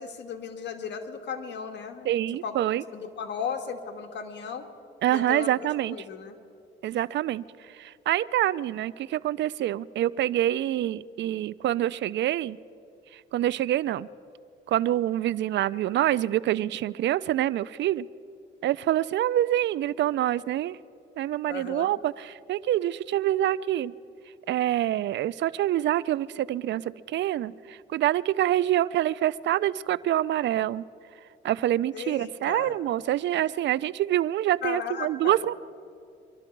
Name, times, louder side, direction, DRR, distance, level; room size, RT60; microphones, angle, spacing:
voice 1, 0.0-2.1 2.4-2.6 2.9-4.7 5.1-6.3 21.5-21.9 31.9-32.7 34.6-35.4, left 6 dB, 65° left, 6 dB, 1.5 m, -36 dB
voice 2, 2.1-2.8 5.0-6.0 6.8-7.4 7.8-12.6 13.3-14.1 14.7-18.1 18.6-20.8 21.2-23.9 24.5-30.8 31.4-35.5, right 13 dB, 65° right, 20 dB, 0.4 m, -26 dB
24.0 x 12.5 x 4.6 m, 2.5 s
cardioid pair, 90°, 20 cm